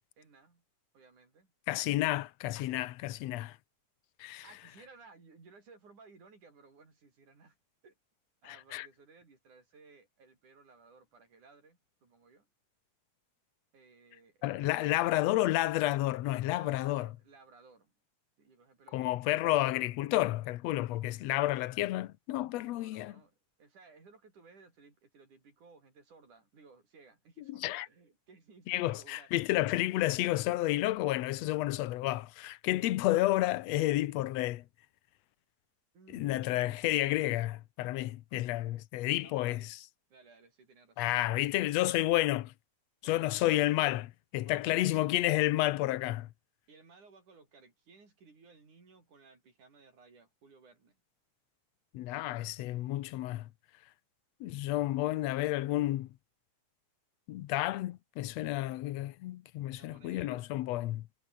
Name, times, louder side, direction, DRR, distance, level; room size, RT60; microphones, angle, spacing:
voice 1, 0.2-0.6 0.9-1.5 4.4-7.6 7.8-7.9 8.4-12.5 13.7-15.1 16.4-17.9 18.4-19.8 22.6-29.6 35.9-36.9 39.2-39.7 40.1-41.4 43.0-43.7 44.4-45.3 46.7-51.0 59.8-60.5, right 4 dB, 80° right, 7.6 m, -59 dB
voice 2, 1.7-3.6 4.2-4.4 8.5-8.9 14.4-17.1 18.9-23.1 27.5-27.9 28.7-34.6 36.1-39.7 41.0-42.5 43.0-44.0 44.3-46.3 51.9-53.5 54.4-56.1 57.3-61.1, left 16 dB, 70° left, 1.9 m, -30 dB
omnidirectional pair, 3.5 m